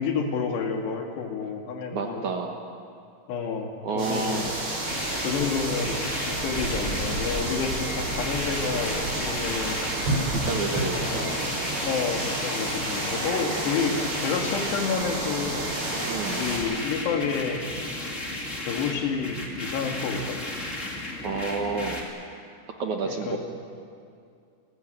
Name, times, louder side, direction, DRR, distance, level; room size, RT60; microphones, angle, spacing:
voice 1, 0.0-2.3 3.3-4.4 5.2-9.8 10.9-11.5 11.8-17.6 18.6-20.4 23.1-23.4, left 5 dB, 80° left, 3 dB, 4.3 m, -30 dB
voice 2, 1.9-2.5 3.8-4.5 10.3-11.5 16.0-16.4 21.2-22.0 22.8-23.4, right 4 dB, 60° right, 3 dB, 2.2 m, -30 dB
sound 1, 4.0-16.6, right 2 dB, 85° right, 8.9 m, -30 dB
sound 2, 4.9-22.0, left 2 dB, 20° left, 2.5 m, -35 dB
sound 3, 10.0-11.1 11.4-12.8 13.1-15.0, left 2 dB, 60° left, 6.8 m, -45 dB
29.5 x 15.5 x 9.1 m, 2.4 s
omnidirectional pair, 4.8 m